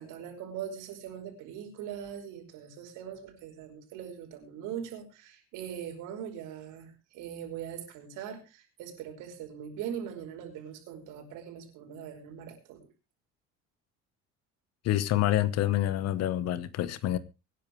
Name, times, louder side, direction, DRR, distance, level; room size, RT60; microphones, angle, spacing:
voice 1, 0.0-12.8, right 9 dB, 75° right, 5.3 m, -41 dB
voice 2, 14.8-17.2, left 13 dB, 55° left, 1.1 m, -27 dB
24.0 x 10.5 x 3.1 m
cardioid pair, 150°, 31 cm